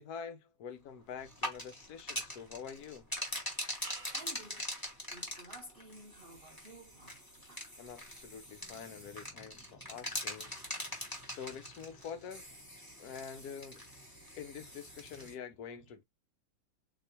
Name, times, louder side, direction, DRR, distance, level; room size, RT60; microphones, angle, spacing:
voice 1, 0.0-3.1 7.8-10.5 11.3-12.4 13.0-13.8 14.4-16.0, left 7 dB, 65° left, 1.0 m, -46 dB
sound 1, 1.2-15.3, equal, 15° left, 1.2 m, -43 dB
sound 2, 3.8-5.6 6.1-6.6, right 5 dB, 25° right, 1.1 m, -56 dB
voice 2, 4.1-4.7 5.1-7.7 9.9-10.0 11.2-11.3, right 1 dB, 85° right, 0.5 m, -53 dB
3.9 x 2.9 x 2.7 m
omnidirectional pair, 2.1 m